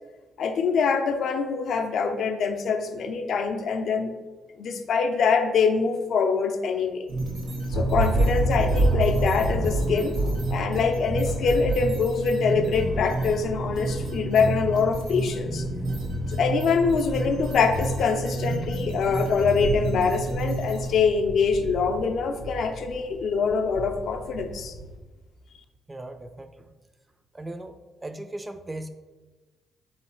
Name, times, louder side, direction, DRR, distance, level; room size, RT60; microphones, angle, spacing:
voice 1, 0.4-4.1 4.6-7.0 7.7-10.2 10.5-15.6 16.3-24.7, left 5 dB, 65° left, 6 dB, 0.5 m, -24 dB
sound 1, 7.1-20.9, right 1 dB, 80° right, 1.2 m, -31 dB
Thunder, 7.4-25.0, right 2 dB, 65° right, 0.6 m, -31 dB
voice 2, 25.9-26.7 27.3-27.7 28.0-28.9, right 1 dB, 20° right, 9 dB, 0.4 m, -37 dB
3.9 x 3.1 x 4.3 m, 1.3 s
cardioid pair, 90°, 0 cm